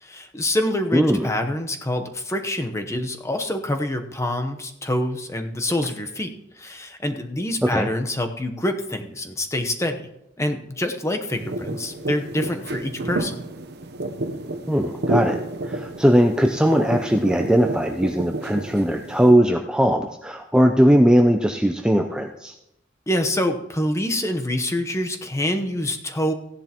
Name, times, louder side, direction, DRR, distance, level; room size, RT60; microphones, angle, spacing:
voice 1, 0.0-10.1 10.4-13.4 23.1-26.3, left 1 dB, 15° left, 6 dB, 0.9 m, -26 dB
voice 2, 0.9-1.3 7.6-7.9 14.7-22.5, equal, 5° right, 3 dB, 0.5 m, -19 dB
sound 1, 11.3-19.3, right 1 dB, 60° right, 0.9 m, -30 dB
15.5 x 10.5 x 3.0 m, 0.86 s
head